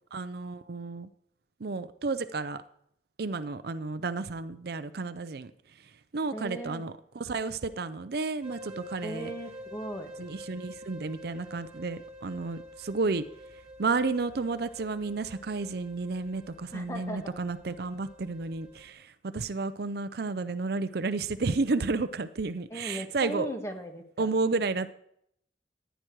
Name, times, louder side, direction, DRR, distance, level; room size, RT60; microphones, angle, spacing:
voice 1, 0.1-1.1 1.6-2.6 3.2-5.5 6.1-9.3 10.2-13.2 13.8-23.5 24.2-24.9, right 3 dB, 55° right, 13 dB, 0.5 m, -32 dB
voice 2, 6.3-6.8 9.0-10.1 16.7-17.4 22.7-24.3, equal, 15° left, 5 dB, 1.4 m, -37 dB
sound 1, 8.4-18.9, equal, 5° right, 4.1 m, -48 dB
14.5 x 10.0 x 4.6 m, 0.71 s
head